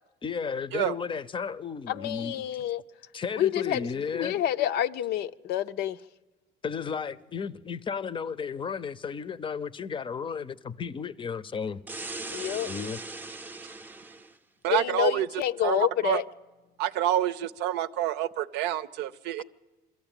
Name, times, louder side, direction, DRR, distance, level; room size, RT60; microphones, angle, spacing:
voice 1, 0.2-2.4 3.1-4.4 6.6-11.8 12.6-13.0 19.4-19.5, left 6 dB, 30° left, 0.6 m, -33 dB
voice 2, 1.9-2.8 3.4-3.9 4.1-6.0 12.3-12.7 14.7-16.2, left 11 dB, 75° left, 0.6 m, -28 dB
sound 1, 11.9-14.3, right 2 dB, 10° right, 0.6 m, -39 dB
voice 3, 14.6-15.3 15.6-16.2 16.8-19.4, right 12 dB, 90° right, 0.6 m, -28 dB
22.5 x 14.0 x 9.0 m
cardioid pair, 110°, 17 cm